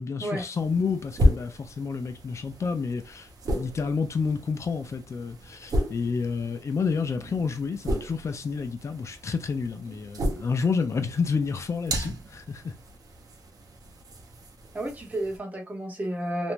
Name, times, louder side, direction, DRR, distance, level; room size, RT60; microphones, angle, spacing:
voice 1, 0.0-12.7, left 5 dB, 50° left, 0.4 m, -29 dB
sound 1, 0.5-15.4, equal, 80° right, 0.6 m, -33 dB
voice 2, 14.7-16.5, right 1 dB, 25° right, 0.8 m, -31 dB
2.5 x 2.1 x 3.0 m
wide cardioid pair, 140°, 6 cm